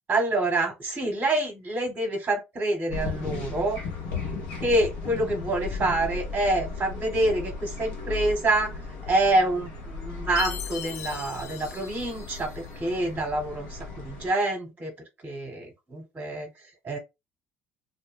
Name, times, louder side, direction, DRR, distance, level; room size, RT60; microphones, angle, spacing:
voice 1, 0.1-3.8 4.6-8.8 9.1-14.9 15.2-16.5 16.8-17.0, right 2 dB, 25° right, 0.9 m, -27 dB
sound 1, 2.9-14.3, left 4 dB, 65° left, 0.9 m, -36 dB
Chime, 10.4-12.8, left 10 dB, 50° left, 0.4 m, -39 dB
2.1 x 2.1 x 3.2 m
hypercardioid pair, 60°, 6 cm